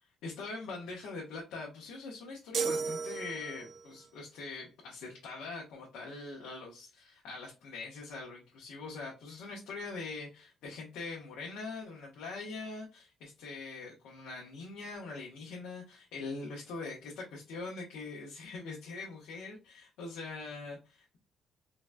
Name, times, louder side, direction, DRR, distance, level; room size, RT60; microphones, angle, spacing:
voice 1, 0.2-21.2, left 3 dB, 90° left, -2 dB, 0.9 m, -43 dB
sound 1, 2.5-3.9, right 6 dB, 65° right, 0.4 m, -34 dB
3.8 x 2.1 x 2.2 m, 0.30 s
cardioid pair, 90°, 0 cm